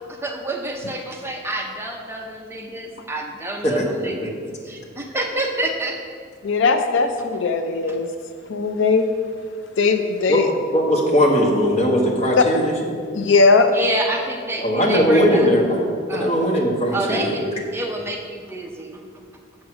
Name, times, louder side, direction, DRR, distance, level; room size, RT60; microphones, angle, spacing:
voice 1, 0.1-4.4 4.6-6.0 13.7-15.5 16.1-16.3 16.9-17.4 17.7-19.0, right 1 dB, 10° right, 1 dB, 0.6 m, -28 dB
voice 2, 6.4-8.1 8.5-9.1 9.8-10.5 12.4-12.5 13.1-13.7, left 4 dB, 65° left, 7 dB, 0.4 m, -18 dB
voice 3, 10.7-12.7 14.6-15.8 16.1-17.5, equal, 35° left, -1 dB, 1.4 m, -19 dB
7.2 x 6.3 x 6.0 m, 2.2 s
head